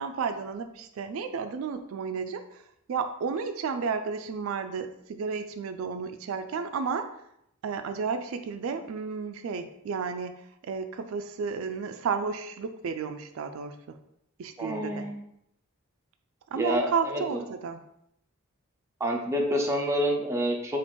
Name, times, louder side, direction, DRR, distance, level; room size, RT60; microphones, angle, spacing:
voice 1, 0.0-2.6 2.9-7.1 7.6-10.3 10.6-14.0 14.4-15.1 16.5-17.8, right 5 dB, 75° right, 9 dB, 0.3 m, -32 dB
voice 2, 14.6-15.1 16.5-17.4 19.0-20.8, equal, 15° right, 1 dB, 0.6 m, -28 dB
4.5 x 2.5 x 4.3 m, 0.77 s
head